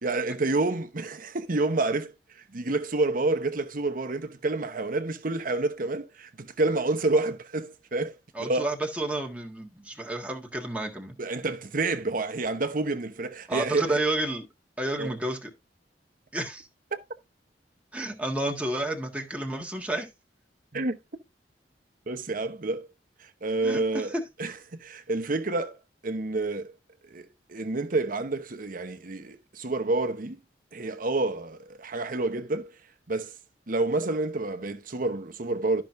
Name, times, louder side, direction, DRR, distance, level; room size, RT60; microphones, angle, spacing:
voice 1, 0.0-2.1 2.5-8.1 8.4-8.7 11.2-14.0 15.0-15.1 16.9-17.0 20.7-21.0 22.1-22.9 23.2-24.1 24.4-25.8 26.0-26.7 27.1-30.4 30.7-32.7 33.1-33.3 33.7-35.8, right 2 dB, 50° right, 1.0 m, -28 dB
voice 2, 8.3-11.1 13.5-14.5 14.8-15.5 16.3-16.7 17.9-20.1 23.6-24.2, right 1 dB, 10° right, 1.5 m, -30 dB
12.5 x 5.9 x 2.6 m
head